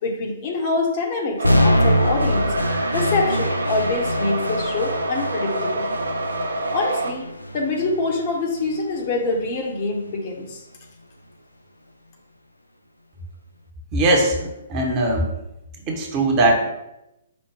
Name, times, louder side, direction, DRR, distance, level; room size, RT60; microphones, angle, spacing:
voice 1, 0.0-2.5 2.9-5.9 6.7-7.3 7.5-10.6, left 3 dB, 35° left, 0 dB, 0.9 m, -25 dB
sound 1, 1.4-9.5, equal, 85° left, 0.4 m, -24 dB
sound 2, 1.4-7.1, right 1 dB, 65° right, 0.4 m, -27 dB
voice 2, 13.9-14.4 14.7-15.3 15.9-16.7, right 1 dB, 25° right, 1 dB, 0.8 m, -19 dB
5.1 x 2.1 x 4.9 m, 0.89 s
figure-of-eight pair, 125°, 0 cm